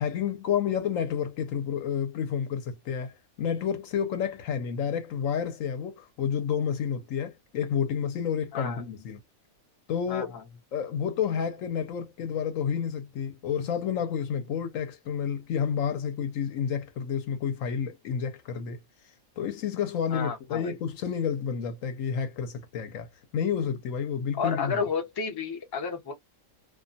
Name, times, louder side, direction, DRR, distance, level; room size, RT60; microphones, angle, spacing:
voice 1, 0.0-9.2 9.9-10.4 10.7-18.8 19.4-24.8, left 7 dB, 70° left, 1.0 m, -30 dB
voice 2, 10.1-10.4 20.1-20.7 24.4-26.1, left 5 dB, 30° left, 0.5 m, -31 dB
2.4 x 2.3 x 2.6 m
omnidirectional pair, 1.5 m